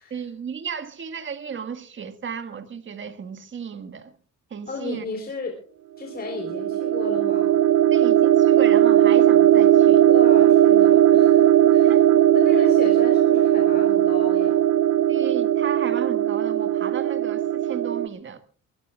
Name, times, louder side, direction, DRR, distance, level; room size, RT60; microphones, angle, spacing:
voice 1, 0.1-4.1 4.5-5.1 7.9-10.1 11.8-12.2 12.5-12.7 15.1-18.4, right 7 dB, 35° right, 1.7 m, -34 dB
voice 2, 4.7-5.6 6.0-7.5 10.1-12.0 12.3-14.6, left 4 dB, 30° left, 3.8 m, -34 dB
sound 1, 6.2-18.1, right 11 dB, 70° right, 0.7 m, -18 dB
22.5 x 21.5 x 2.4 m
cardioid pair, 135°, 32 cm